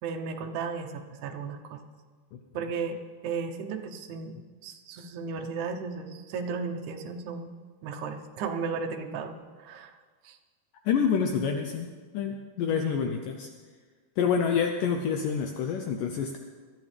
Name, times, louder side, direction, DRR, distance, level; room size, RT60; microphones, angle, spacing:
voice 1, 0.0-1.8 2.5-3.0 3.2-4.4 4.6-7.5 7.8-9.9 10.2-10.4 12.7-13.1, right 5 dB, 70° right, 4 dB, 2.0 m, -35 dB
voice 2, 10.9-11.9 12.1-13.5 14.2-16.4, left 7 dB, 75° left, 4 dB, 2.1 m, -27 dB
20.5 x 12.5 x 3.4 m, 1.5 s
omnidirectional pair, 4.3 m